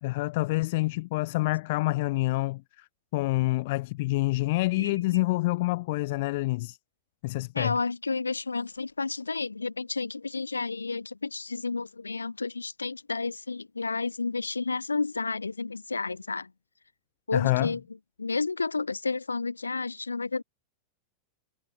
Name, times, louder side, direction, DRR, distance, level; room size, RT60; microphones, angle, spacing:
voice 1, 0.0-2.8 3.1-6.8 7.2-7.7 17.3-17.7, left 21 dB, 50° left, 1.5 m, -27 dB
voice 2, 4.8-5.2 7.5-16.5 17.3-17.8 18.2-20.4, left 4 dB, 80° left, 2.6 m, -31 dB
figure-of-eight pair, 90°, 0 cm